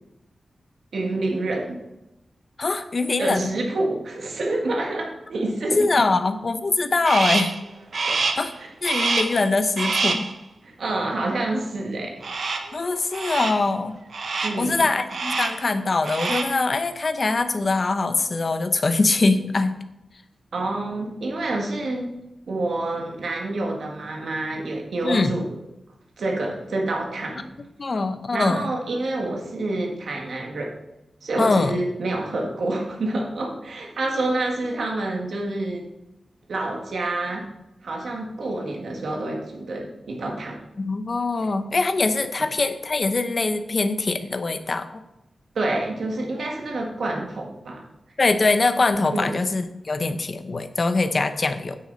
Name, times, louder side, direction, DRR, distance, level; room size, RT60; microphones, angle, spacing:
voice 1, 0.9-1.8 3.2-6.1 8.1-8.3 8.6-8.7 10.6-12.2 14.4-14.9 20.5-22.2 22.5-25.5 26.2-27.5 28.3-30.7 31.2-35.9 36.5-37.5 37.8-40.6 45.5-47.9 49.1-49.3, right 2 dB, 70° right, 0 dB, 1.8 m, -28 dB
voice 2, 2.6-3.5 5.7-7.5 8.4-8.5 8.8-10.3 12.7-14.0 14.6-19.7 25.0-25.3 27.8-28.7 31.4-31.8 40.8-45.0 48.2-51.8, left 3 dB, 40° left, 9 dB, 0.8 m, -23 dB
Crow, 7.0-7.6 7.9-8.5 8.8-9.4 9.8-10.3 12.2-12.8 13.1-13.7 14.1-14.7 15.1-15.7 16.0-16.6, right 4 dB, 55° right, 1.0 m, -26 dB
9.6 x 8.3 x 4.0 m, 0.92 s
wide cardioid pair, 165°, 0 cm